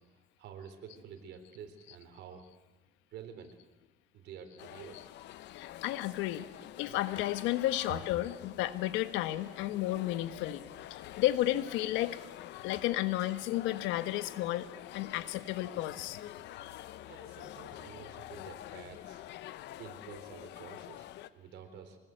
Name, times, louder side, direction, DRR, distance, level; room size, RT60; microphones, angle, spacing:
voice 1, 0.4-2.5 3.1-3.6 4.1-5.1 17.0-19.2 19.8-22.0, right 7 dB, 65° right, 7 dB, 4.1 m, -49 dB
sound 1, 4.6-21.3, left 13 dB, 65° left, 0.9 m, -47 dB
voice 2, 5.5-6.4 6.8-10.6 10.9-12.2 12.6-14.7 14.9-16.2, left 15 dB, 90° left, 12 dB, 1.3 m, -32 dB
25.0 x 19.5 x 7.9 m, 1.2 s
cardioid pair, 125°, 19 cm